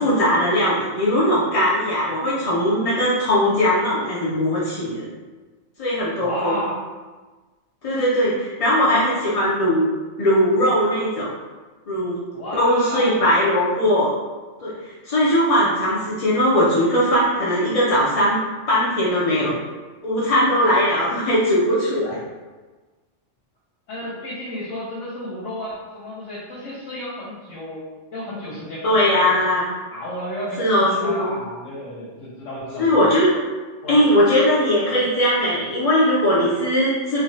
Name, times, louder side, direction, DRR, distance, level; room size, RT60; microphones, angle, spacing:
voice 1, 0.0-5.0 5.8-6.6 7.8-9.9 10.2-11.3 11.9-12.2 12.6-14.1 14.6-14.7 15.1-18.4 18.7-19.6 20.0-22.2 28.8-29.6 30.6-31.3 32.8-33.3 33.9-37.2, equal, 55° left, -8 dB, 0.4 m, -19 dB
voice 2, 6.2-6.8 8.9-9.2 12.3-13.2 23.9-27.8 28.1-29.3 29.9-33.1 33.8-34.0, left 1 dB, 80° left, -8 dB, 1.0 m, -32 dB
3.1 x 2.2 x 2.7 m, 1.3 s
omnidirectional pair, 1.3 m